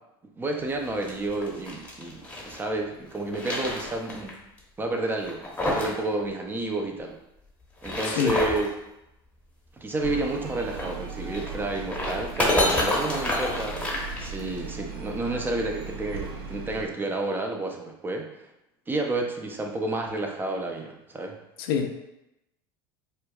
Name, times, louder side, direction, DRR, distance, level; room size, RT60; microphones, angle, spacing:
voice 1, 0.4-4.4 4.8-7.2 7.8-8.7 9.8-18.3 18.9-21.4, right 2 dB, 15° right, 2 dB, 0.5 m, -30 dB
sound 1, 0.8-2.6 3.1-4.3 4.6-4.7 5.2-6.0 6.3-6.4 7.6-8.7 10.6-14.7, left 1 dB, 10° left, 0.9 m, -29 dB
voice 2, 8.1-8.4 21.6-22.0, left 7 dB, 80° left, 5 dB, 0.4 m, -26 dB
sound 2, 10.0-16.8, right 4 dB, 85° right, 0.6 m, -38 dB
4.4 x 2.3 x 2.3 m, 0.87 s
supercardioid pair, 100°, 12 cm